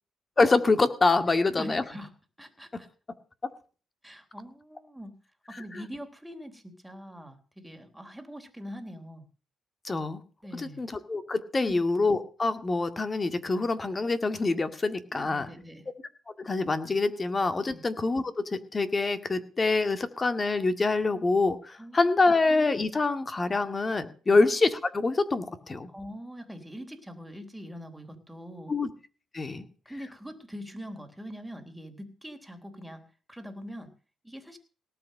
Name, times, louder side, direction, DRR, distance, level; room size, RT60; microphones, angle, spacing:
voice 1, 0.4-1.8 5.5-5.6 9.8-10.2 10.6-15.5 16.4-25.9 28.7-28.9 29.3-29.6, left 3 dB, 30° left, 10 dB, 2.1 m, -26 dB
voice 2, 1.3-2.1 2.4-2.9 4.0-5.2 5.5-9.3 10.4-10.8 11.6-11.8 15.1-15.9 17.7-17.8 21.8-22.0 24.3-24.4 25.9-28.7 29.9-33.0 33.3-33.9 34.2-34.6, equal, 5° right, 6 dB, 3.7 m, -43 dB
18.0 x 8.5 x 6.6 m, 0.38 s
cardioid pair, 90°, 0 cm